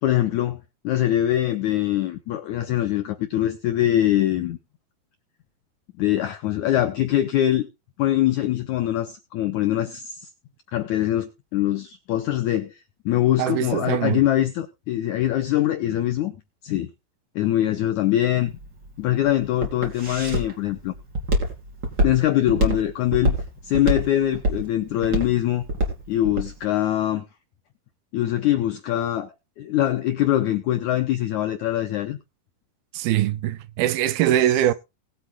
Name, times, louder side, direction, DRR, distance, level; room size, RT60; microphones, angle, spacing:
voice 1, 0.0-4.6 6.0-7.7 8.0-10.3 10.7-12.7 13.0-16.3 16.6-16.9 17.3-18.6 19.0-20.9 22.0-23.4 23.6-25.6 26.1-27.2 28.1-29.3 29.6-32.2, left 13 dB, 85° left, 1.7 m, -23 dB
voice 2, 13.4-14.2 32.9-34.7, right 12 dB, 80° right, 2.5 m, -22 dB
Walk footsteps, 18.4-26.5, right 1 dB, 30° right, 3.1 m, -25 dB
20.0 x 8.2 x 2.3 m
omnidirectional pair, 4.6 m